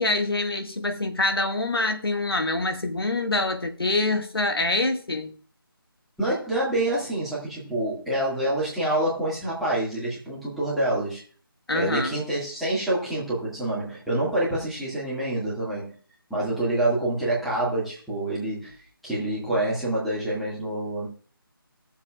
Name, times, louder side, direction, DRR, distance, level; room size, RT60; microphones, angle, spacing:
voice 1, 0.0-5.3 11.7-12.2, left 2 dB, 80° left, 5 dB, 1.9 m, -25 dB
voice 2, 6.2-11.2 11.7-15.9 16.3-18.7 19.0-21.1, right 1 dB, ahead, -10 dB, 2.1 m, -27 dB
20.0 x 7.2 x 2.5 m, 0.42 s
figure-of-eight pair, 160°, 12 cm